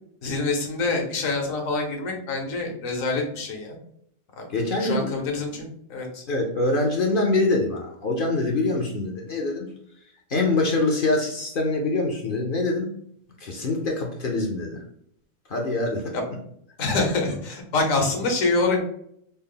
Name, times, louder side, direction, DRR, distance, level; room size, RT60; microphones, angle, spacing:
voice 1, 0.2-3.8 4.4-4.5 4.8-6.2 16.1-16.2 16.8-18.8, left 3 dB, 75° left, 1 dB, 1.3 m, -26 dB
voice 2, 4.5-5.1 6.3-9.7 10.3-12.9 13.4-14.8 15.5-16.1, left 2 dB, 55° left, 1 dB, 0.6 m, -24 dB
4.0 x 2.0 x 3.7 m, 0.71 s
omnidirectional pair, 1.4 m